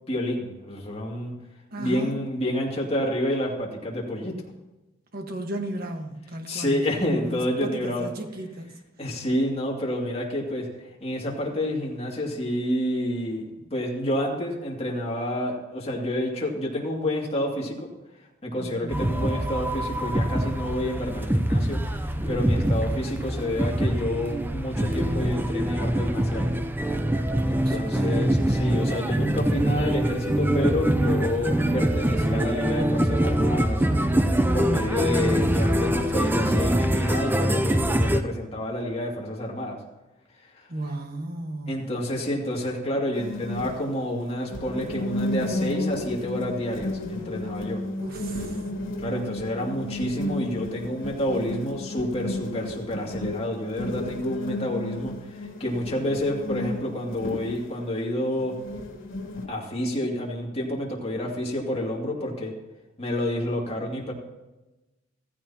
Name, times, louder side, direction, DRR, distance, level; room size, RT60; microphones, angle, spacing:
voice 1, 0.1-1.3 1.8-4.3 6.5-8.1 9.0-10.7 11.0-13.4 13.7-17.8 18.4-21.8 22.3-26.5 27.5-33.8 34.5-39.8 41.7-47.8 49.0-58.5 59.5-62.5 63.0-64.1, left 1 dB, 30° left, -2 dB, 2.5 m, -29 dB
voice 2, 1.7-2.1 5.1-8.7 18.6-19.2 27.5-28.3 40.7-41.9 48.0-48.6, right 1 dB, 50° right, 4 dB, 1.5 m, -35 dB
sound 1, 18.9-38.2, right 1 dB, 10° right, 0.6 m, -24 dB
sound 2, 43.1-59.5, left 1 dB, 75° left, 2.4 m, -33 dB
15.5 x 14.5 x 2.9 m, 1.1 s
head